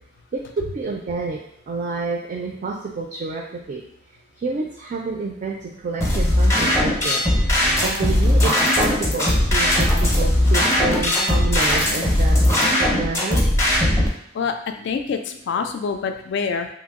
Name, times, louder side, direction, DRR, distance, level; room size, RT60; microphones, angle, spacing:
voice 1, 0.3-1.4 1.7-3.4 3.7-3.8 4.4-13.4, right 3 dB, 45° right, -1 dB, 0.4 m, -29 dB
sound 1, 6.0-14.1, left 1 dB, 15° left, 0.6 m, -19 dB
voice 2, 14.3-16.7, left 5 dB, 65° left, 6 dB, 0.3 m, -26 dB
2.9 x 2.0 x 3.5 m, 0.77 s
head